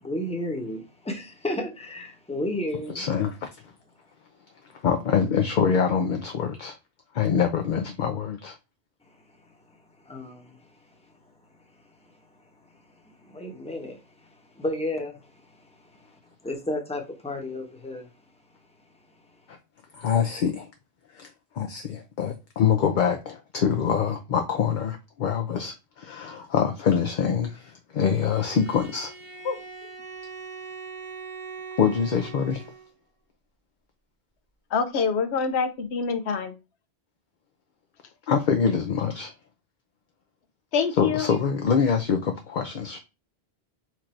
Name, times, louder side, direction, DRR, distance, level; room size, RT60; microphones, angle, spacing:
voice 1, 0.0-3.1 9.1-11.1 12.0-12.2 12.5-18.1, left 1 dB, 5° left, 0.9 m, -34 dB
voice 2, 2.9-3.7 4.7-6.7 7.1-8.5 19.5-19.6 19.9-20.7 21.1-21.3 21.5-29.1 31.8-32.6 38.3-39.3 41.0-43.0, left 7 dB, 55° left, 0.6 m, -25 dB
Bowed string instrument, 28.2-32.9, right 5 dB, 35° right, 0.8 m, -41 dB
voice 3, 34.7-36.6 40.7-41.3, left 5 dB, 85° left, 1.0 m, -26 dB
4.6 x 2.6 x 4.3 m
omnidirectional pair, 1.1 m